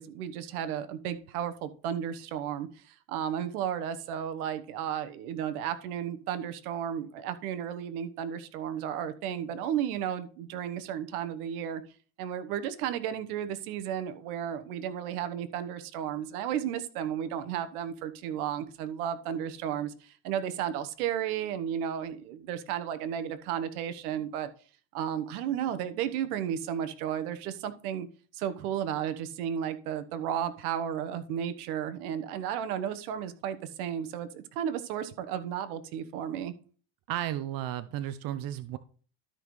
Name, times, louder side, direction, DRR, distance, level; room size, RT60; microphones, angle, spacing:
voice 1, 0.0-11.8 12.2-24.5 24.9-28.1 28.3-36.5, right 9 dB, 80° right, 11 dB, 1.2 m, -33 dB
voice 2, 37.1-38.8, right 12 dB, 50° right, 12 dB, 0.8 m, -33 dB
13.0 x 5.4 x 3.2 m, 0.41 s
supercardioid pair, 105°, 44 cm